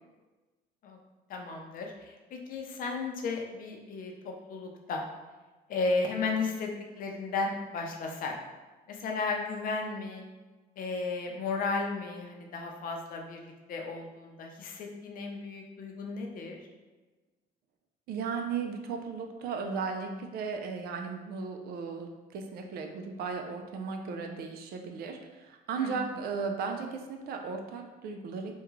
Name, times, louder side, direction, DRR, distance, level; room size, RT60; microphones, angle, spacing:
voice 1, 1.3-5.0 5.7-6.7 7.0-8.3 8.9-10.2 10.8-16.6 25.8-25.9, left 3 dB, 55° left, 2 dB, 0.6 m, -34 dB
voice 2, 18.1-28.5, right 5 dB, 65° right, 4 dB, 0.4 m, -36 dB
3.5 x 2.3 x 3.0 m, 1.2 s
cardioid pair, 110°, 17 cm